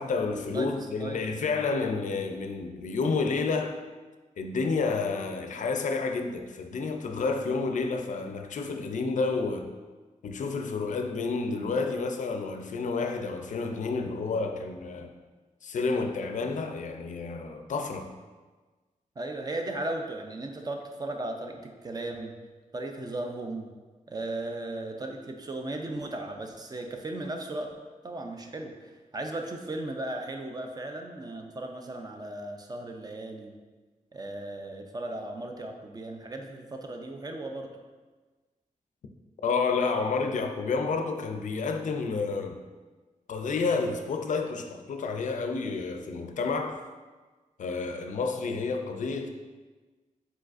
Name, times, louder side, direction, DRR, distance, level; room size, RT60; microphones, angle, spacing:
voice 1, 0.0-3.8 4.4-9.7 10.2-15.1 15.6-18.1 39.4-42.6 43.3-46.8 47.6-49.3, left 4 dB, 65° left, 5 dB, 0.4 m, -30 dB
voice 2, 19.2-22.3 22.7-23.7 24.1-27.7 28.0-33.5 34.1-37.7, right 2 dB, 30° right, 3 dB, 0.4 m, -36 dB
4.8 x 4.0 x 2.5 m, 1.3 s
wide cardioid pair, 150°, 14 cm